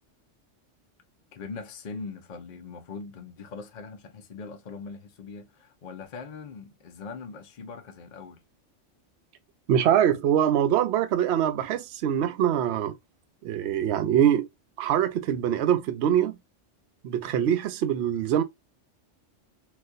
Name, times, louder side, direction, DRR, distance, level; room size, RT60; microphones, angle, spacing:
voice 1, 1.3-8.4, left 4 dB, 45° left, 0.7 m, -41 dB
voice 2, 9.7-12.9 13.4-14.5 14.8-16.4 17.0-18.4, right 10 dB, 65° right, 0.8 m, -23 dB
4.0 x 2.4 x 2.4 m
omnidirectional pair, 1.3 m